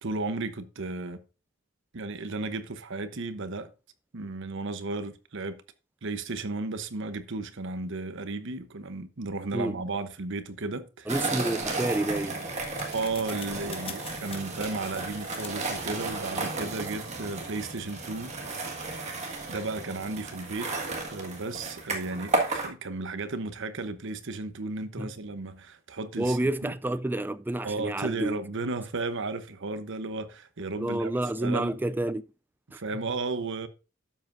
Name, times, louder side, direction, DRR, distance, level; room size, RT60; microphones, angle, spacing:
voice 1, 0.0-1.2 1.9-3.7 4.1-5.6 6.0-11.1 12.9-18.3 18.8-19.2 19.5-20.7 21.1-26.7 27.6-31.8 32.7-33.7, right 3 dB, 65° right, 0.9 m, -34 dB
voice 2, 11.1-12.5 25.0-25.1 26.2-28.4 30.8-32.2 32.7-32.8, right 1 dB, 10° right, 0.3 m, -29 dB
sound 1, 11.1-22.7, right 3 dB, 35° right, 1.8 m, -33 dB
sound 2, 11.8-17.2, left 6 dB, 25° left, 0.9 m, -47 dB
12.0 x 7.4 x 2.6 m
head